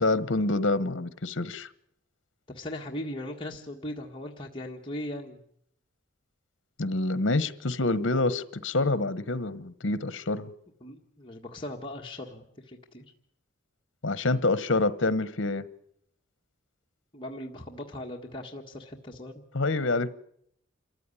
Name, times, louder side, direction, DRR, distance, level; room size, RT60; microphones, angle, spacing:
voice 1, 0.0-1.7 6.8-10.5 14.0-15.7 19.5-20.1, left 2 dB, 65° left, 1.1 m, -27 dB
voice 2, 2.5-5.4 10.8-13.0 17.1-19.4, left 1 dB, 25° left, 1.6 m, -39 dB
27.0 x 14.5 x 9.8 m
head